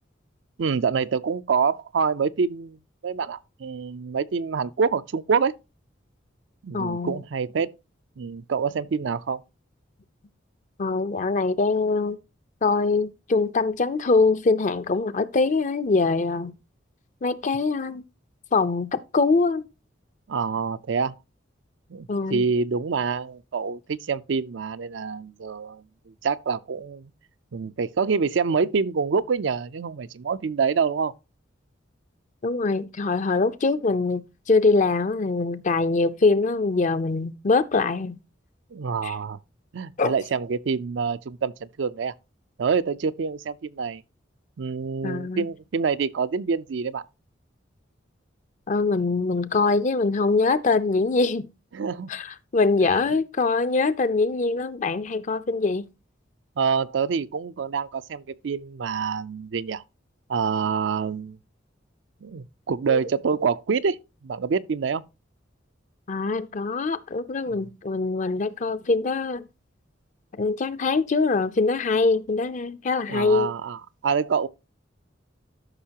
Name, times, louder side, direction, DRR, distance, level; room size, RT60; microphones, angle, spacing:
voice 1, 0.6-2.8 3.0-5.5 6.6-7.7 8.2-9.4 20.3-21.2 21.9-25.8 26.2-27.1 27.5-31.1 38.7-39.4 39.7-42.1 42.6-44.0 44.6-47.0 51.7-52.1 52.9-53.0 56.6-59.8 60.3-61.4 62.2-64.0 64.2-65.0 73.1-74.5, right 5 dB, 70° right, 0.4 m, -26 dB
voice 2, 6.7-7.2 10.8-12.2 12.6-16.5 17.2-18.0 18.5-19.6 22.1-22.5 32.4-38.2 39.0-39.1 40.0-40.1 45.0-45.5 48.7-51.5 52.1-55.8 62.9-63.0 66.1-69.4 70.4-73.5, left 3 dB, 40° left, 0.5 m, -23 dB
13.0 x 5.7 x 2.8 m
head